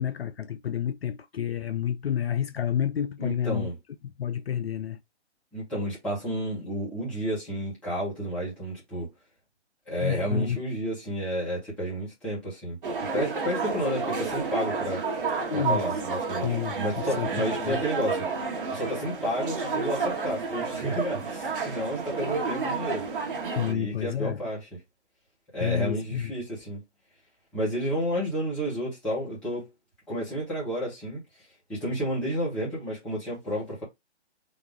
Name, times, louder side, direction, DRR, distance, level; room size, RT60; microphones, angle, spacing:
voice 1, 0.0-3.7 4.2-5.0 10.0-10.6 15.5-15.8 16.4-17.3 17.6-17.8 23.6-24.4 25.6-26.3, left 9 dB, 60° left, 0.5 m, -29 dB
voice 2, 3.2-3.7 5.5-9.1 9.9-15.1 15.5-23.1 23.6-24.7 25.5-26.8 27.5-29.7 30.1-31.2 31.7-33.8, equal, 5° left, 1.2 m, -31 dB
sound 1, 12.8-23.7, right 4 dB, 50° right, 1.6 m, -30 dB
4.1 x 2.9 x 3.5 m
hypercardioid pair, 170°, 34 cm